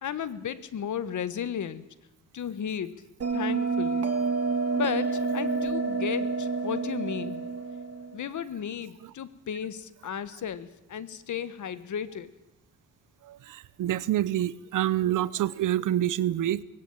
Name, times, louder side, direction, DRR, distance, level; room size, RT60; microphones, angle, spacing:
voice 1, 0.0-1.9 2.3-3.0 3.3-4.1 4.7-7.4 8.1-12.3, left 8 dB, 70° left, 1.4 m, -34 dB
Bell, 3.2-8.3, right 4 dB, 55° right, 2.6 m, -29 dB
voice 2, 13.2-16.6, right 12 dB, 85° right, 0.8 m, -27 dB
20.0 x 16.5 x 8.9 m
cardioid pair, 70°, 30 cm